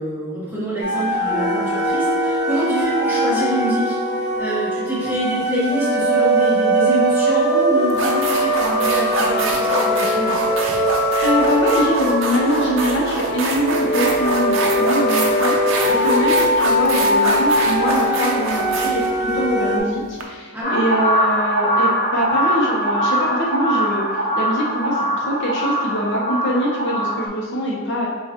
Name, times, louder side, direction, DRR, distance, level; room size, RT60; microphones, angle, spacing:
voice 1, 0.0-10.4 20.5-20.8, equal, 10° right, -9 dB, 1.1 m, -25 dB
sound 1, 0.8-19.8, equal, 90° left, 0.9 m, -20 dB
sound 2, 7.3-7.5 7.9-20.2, right 3 dB, 60° right, 0.5 m, -25 dB
voice 2, 11.2-28.1, equal, 55° left, -3 dB, 0.6 m, -23 dB
sound 3, 20.6-27.3, equal, 20° left, 1.2 m, -21 dB
6.5 x 2.3 x 2.8 m, 1.5 s
head